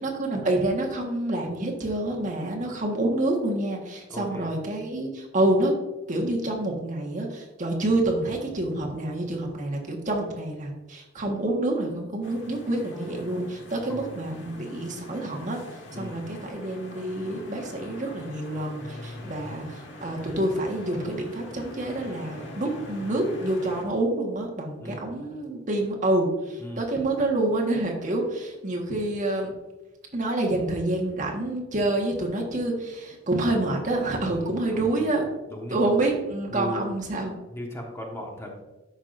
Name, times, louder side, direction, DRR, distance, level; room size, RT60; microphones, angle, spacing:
voice 1, 0.0-5.7 6.1-15.6 16.0-29.5 30.1-35.3 35.7-37.4, right 1 dB, 45° right, 0 dB, 1.5 m, -27 dB
voice 2, 4.1-4.6 13.9-14.3 15.9-16.3 19.2-19.5 24.8-25.1 26.6-26.9 34.3-35.9 36.4-36.9 37.5-38.6, equal, 15° left, -1 dB, 1.4 m, -38 dB
sound 1, 12.2-23.8, left 1 dB, 70° left, 1.6 m, -43 dB
13.0 x 5.7 x 2.6 m, 1.1 s
head